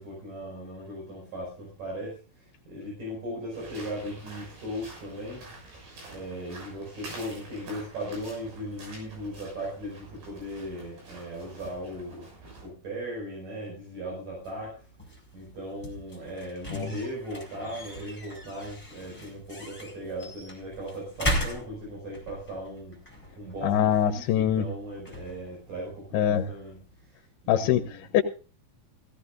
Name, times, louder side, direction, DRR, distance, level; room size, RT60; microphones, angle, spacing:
voice 1, 0.0-5.5 6.1-12.3 12.6-14.8 15.3-23.0 23.4-26.8 27.1-28.0, equal, 55° right, -3 dB, 7.1 m, -38 dB
sound 1, 3.5-12.7, right 2 dB, 85° right, 8.5 m, -47 dB
sound 2, 14.4-27.1, equal, 5° left, 4.7 m, -38 dB
voice 2, 23.6-24.7 26.1-26.5 27.5-27.8 28.1-28.2, left 10 dB, 80° left, 8 dB, 2.9 m, -22 dB
16.5 x 16.5 x 2.6 m, 0.35 s
omnidirectional pair, 4.5 m